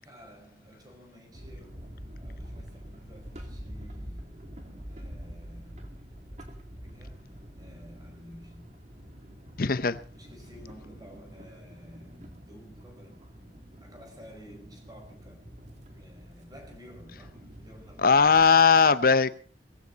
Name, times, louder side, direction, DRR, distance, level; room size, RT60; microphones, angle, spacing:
voice 1, 0.0-4.4 4.9-6.0 6.7-8.8 10.1-13.4 13.8-15.5 15.9-19.2, equal, 20° right, 5.0 m, -52 dB
sound 1, 1.3-18.5, equal, 40° right, 2.6 m, -46 dB
voice 2, 9.6-10.0 18.0-19.3, left 5 dB, 50° left, 0.7 m, -19 dB
19.5 x 15.5 x 4.0 m
head